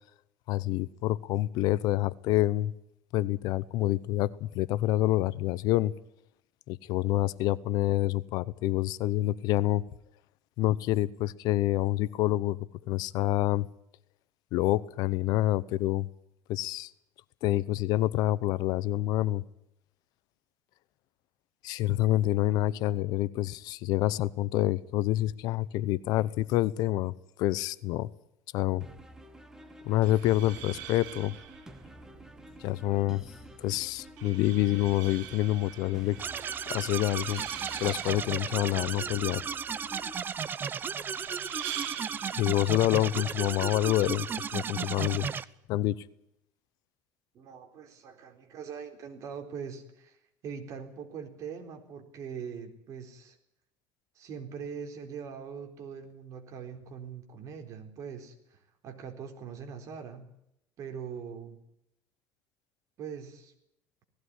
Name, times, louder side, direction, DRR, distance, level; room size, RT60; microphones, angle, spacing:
voice 1, 0.5-2.7 3.1-5.9 6.7-9.8 10.6-12.6 12.9-13.7 14.5-16.1 16.5-16.9 17.4-19.4 21.6-27.1 27.4-28.1 28.5-28.8 29.8-31.4 32.6-33.2 33.6-36.2 36.7-37.4 37.8-39.4 42.4-45.3 45.7-46.0, left 15 dB, 65° left, 0.8 m, -27 dB
sound 1, 28.8-40.2, right 1 dB, 10° right, 1.8 m, -50 dB
sound 2, 29.9-44.9, right 11 dB, 85° right, 2.4 m, -45 dB
sound 3, 36.2-45.4, right 7 dB, 30° right, 0.8 m, -34 dB
voice 2, 42.8-43.3 47.3-50.2 50.4-53.4 54.2-58.6 58.8-60.3 60.8-61.6 63.0-63.5, right 6 dB, 50° right, 4.1 m, -42 dB
18.5 x 16.0 x 9.7 m
cardioid pair, 140°, 7 cm